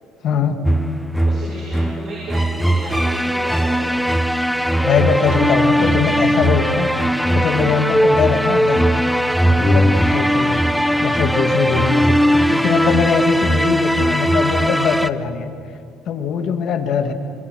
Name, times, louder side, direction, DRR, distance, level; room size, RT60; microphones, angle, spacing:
voice 1, 0.2-0.6 4.8-6.9 7.3-8.9 9.5-10.7 11.0-12.2 12.5-15.5 16.1-17.1, left 6 dB, 50° left, 6 dB, 2.1 m, -21 dB
sound 1, 0.7-15.1, equal, ahead, 0.6 m, -18 dB
voice 2, 1.2-3.9 10.9-11.1, right 2 dB, 50° right, -4 dB, 6.7 m, -33 dB
sound 2, 5.8-8.4, right 3 dB, 80° right, 2.7 m, -36 dB
26.0 x 21.5 x 6.4 m, 2.4 s
cardioid pair, 130°, 0 cm